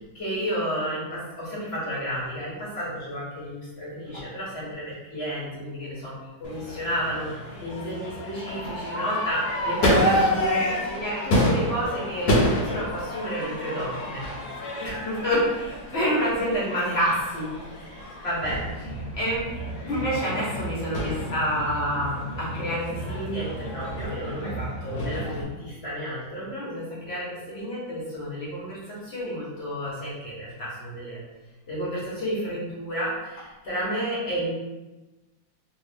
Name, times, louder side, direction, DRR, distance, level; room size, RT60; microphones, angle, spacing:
voice 1, 0.1-7.3 7.6-14.3 14.8-15.4 15.9-17.5 17.9-18.9 19.2-19.4 19.8-22.1 22.5-31.2 31.7-34.5, equal, 40° left, -7 dB, 1.0 m, -30 dB
Crowd / Fireworks, 6.4-25.4, left 1 dB, 60° left, 1.2 m, -29 dB
3.2 x 2.5 x 3.3 m, 1.1 s
omnidirectional pair, 2.2 m